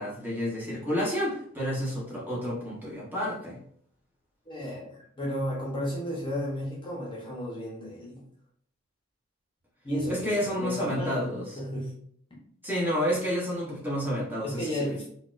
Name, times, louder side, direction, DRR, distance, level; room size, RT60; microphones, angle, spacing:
voice 1, 0.0-3.6 10.1-11.6 12.6-15.0, equal, 10° right, -6 dB, 0.9 m, -30 dB
voice 2, 4.5-8.3 9.8-12.0 14.4-15.1, equal, 25° left, -4 dB, 0.9 m, -33 dB
4.1 x 2.4 x 2.5 m, 0.63 s
head